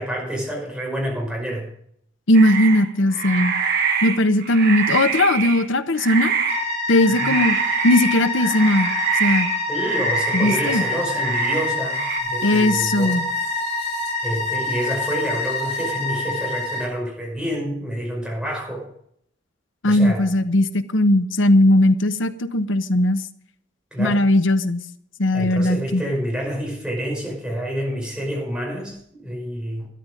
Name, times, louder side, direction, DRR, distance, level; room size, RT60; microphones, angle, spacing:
voice 1, 0.0-1.7 7.1-7.4 9.7-13.2 14.2-18.9 19.9-20.3 23.9-24.2 25.3-29.9, equal, 5° right, -2 dB, 5.3 m, -28 dB
voice 2, 2.3-3.5 4.0-6.3 6.9-7.6 7.8-8.9 9.2-9.5 10.3-10.8 12.4-13.2 19.8-23.2 24.0-24.8 25.2-26.0, left 1 dB, 85° left, 11 dB, 1.0 m, -18 dB
sound 1, 2.3-5.7 6.0-6.7 7.0-12.2, right 6 dB, 50° right, 1.6 m, -25 dB
sound 2, 6.5-16.9, left 3 dB, 35° left, 2.9 m, -26 dB
13.0 x 11.0 x 5.1 m, 0.69 s
head